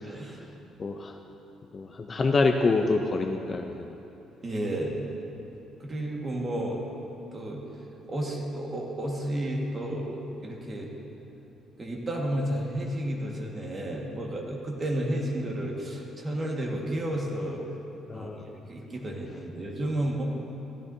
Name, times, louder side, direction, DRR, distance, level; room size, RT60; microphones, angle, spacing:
voice 1, 0.0-0.5 4.4-5.1 5.8-6.8 7.3-7.6 8.1-10.9 11.8-17.6 18.1-18.3 18.7-20.2, right 1 dB, 25° right, -1 dB, 1.6 m, -32 dB
voice 2, 0.8-1.1 1.7-4.0 18.1-18.6, left 3 dB, 30° left, 4 dB, 0.5 m, -26 dB
15.5 x 13.0 x 2.7 m, 3.0 s
cardioid pair, 150°, 0 cm